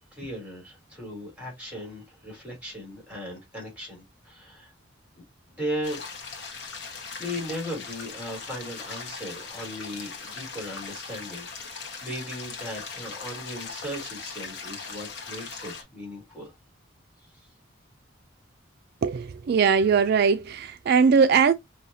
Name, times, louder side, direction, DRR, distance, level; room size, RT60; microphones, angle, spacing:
voice 1, 0.1-4.7 5.5-6.0 7.2-16.5 17.2-17.5, equal, 5° right, 3.2 m, -37 dB
sound 1, 5.8-15.8, left 5 dB, 60° left, 1.2 m, -39 dB
voice 2, 19.0-21.5, right 6 dB, 55° right, 0.3 m, -20 dB
5.6 x 2.8 x 2.7 m
head